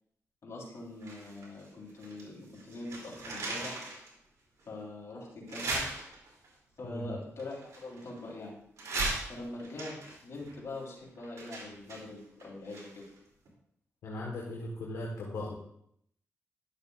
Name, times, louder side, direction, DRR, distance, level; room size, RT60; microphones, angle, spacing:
voice 1, 0.4-3.9 4.7-5.8 6.8-8.6 9.3-10.0 10.2-12.9, left 2 dB, 60° left, -3 dB, 3.3 m, -43 dB
sound 1, 1.0-2.3 2.5-4.1 4.6-4.7 5.5-6.5 7.4-8.3 8.8-13.2 13.4-13.5, right 2 dB, 75° right, 2.6 m, -38 dB
voice 2, 6.8-7.2 14.0-15.6, left 1 dB, 90° left, -3 dB, 1.3 m, -38 dB
11.0 x 6.7 x 2.4 m, 0.71 s
cardioid pair, 65°, 5 cm